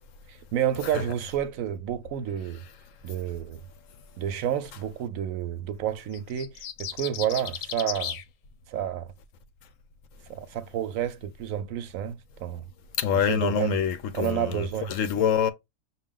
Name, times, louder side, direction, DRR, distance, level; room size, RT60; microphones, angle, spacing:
voice 1, 0.3-2.6 3.0-3.6 4.2-8.2 8.7-9.1 10.3-12.7 13.3-13.8 14.1-14.9, right 10 dB, 70° right, 0.9 m, -30 dB
sound 1, 6.1-8.2, left 9 dB, 85° left, 1.2 m, -35 dB
voice 2, 13.0-15.5, left 8 dB, 70° left, 0.9 m, -26 dB
5.8 x 2.4 x 3.6 m
omnidirectional pair, 1.5 m